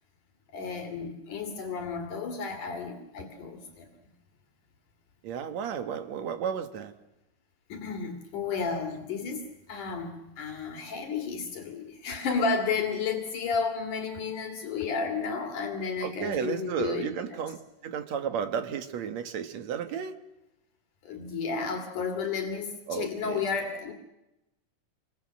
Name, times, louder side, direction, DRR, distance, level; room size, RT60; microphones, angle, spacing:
voice 1, 0.5-3.9 7.7-9.4 9.7-17.4 21.0-23.9, left 5 dB, 70° left, 4 dB, 3.6 m, -32 dB
voice 2, 5.2-6.9 16.0-20.1 22.9-23.4, right 8 dB, 60° right, 8 dB, 2.6 m, -33 dB
27.0 x 23.0 x 7.5 m, 0.93 s
omnidirectional pair, 3.8 m